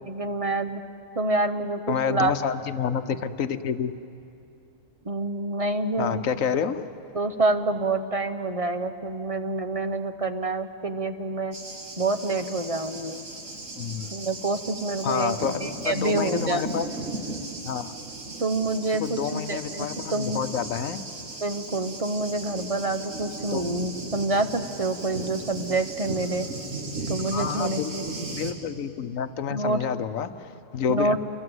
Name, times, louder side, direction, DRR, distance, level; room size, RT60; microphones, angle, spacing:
voice 1, 0.1-0.8 1.1-2.3 5.0-6.3 7.1-11.6 12.0-13.2 14.1-16.7 18.4-19.9 20.1-20.4 21.4-26.5 27.1-28.0 29.5-29.8 30.9-31.2, right 2 dB, 30° right, 9 dB, 0.9 m, -27 dB
voice 2, 1.9-3.9 6.0-6.9 13.8-14.1 15.0-16.9 17.6-17.9 18.9-21.0 23.5-23.7 27.3-28.0 28.3-31.2, left 7 dB, 80° left, 11 dB, 1.3 m, -29 dB
Thunder, 11.5-28.5, right 2 dB, 70° right, 2.6 m, -36 dB
29.0 x 23.5 x 8.0 m, 2.7 s
omnidirectional pair, 1.4 m